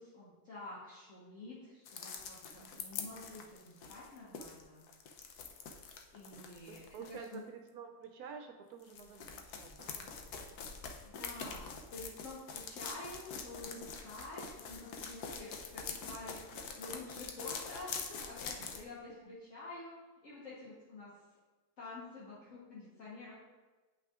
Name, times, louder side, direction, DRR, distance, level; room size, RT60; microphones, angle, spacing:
voice 1, 0.0-4.8 6.1-7.4 11.0-19.9 20.2-21.1 21.8-23.3, left 2 dB, 55° left, -8 dB, 1.6 m, -49 dB
sound 1, 1.9-7.4 8.8-18.8, left 6 dB, 90° left, 1.2 m, -45 dB
voice 2, 2.5-2.9 6.4-10.3 10.6-10.8 18.6-18.7, right 6 dB, 80° right, 4 dB, 1.1 m, -50 dB
9.4 x 5.7 x 2.4 m, 1.2 s
omnidirectional pair, 1.6 m